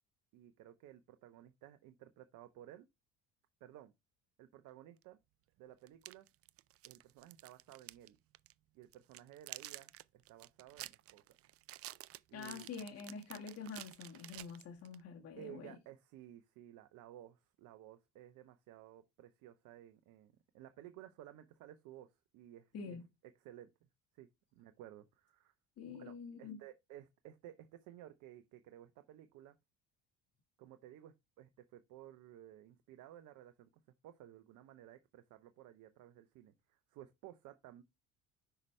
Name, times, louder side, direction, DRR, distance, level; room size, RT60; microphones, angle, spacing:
voice 1, 0.3-2.9 3.6-3.9 4.4-5.2 5.6-6.3 6.8-8.2 8.7-11.2 12.3-12.7 15.4-23.0 23.4-23.7 24.1-25.5 25.9-29.6 30.6-33.7 34.0-37.8, right 12 dB, 70° right, 0.8 m, -56 dB
sound 1, 5.0-5.1 5.9-8.1 8.3-8.5 8.9-15.0, right 15 dB, 50° right, 0.5 m, -51 dB
voice 2, 12.3-15.8 22.7-23.0 25.8-26.6, left 5 dB, 50° left, 1.6 m, -47 dB
5.9 x 5.5 x 3.2 m
supercardioid pair, 80°, 31 cm